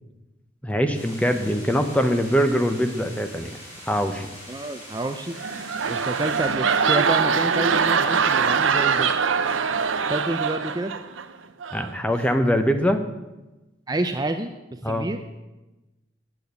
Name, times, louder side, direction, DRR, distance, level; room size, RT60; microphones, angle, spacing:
voice 1, 0.6-3.5 3.9-4.3 11.7-13.0 14.8-15.1, equal, 5° left, 7 dB, 0.8 m, -22 dB
sound 1, 0.9-6.5, equal, 35° left, 5.4 m, -43 dB
voice 2, 4.5-5.4 5.9-9.1 10.1-10.9 13.9-15.2, right 2 dB, 20° right, 6 dB, 0.5 m, -28 dB
sound 2, 5.3-11.2 11.6-11.9, right 6 dB, 90° right, 0.7 m, -23 dB
9.2 x 8.7 x 8.1 m, 1.1 s
head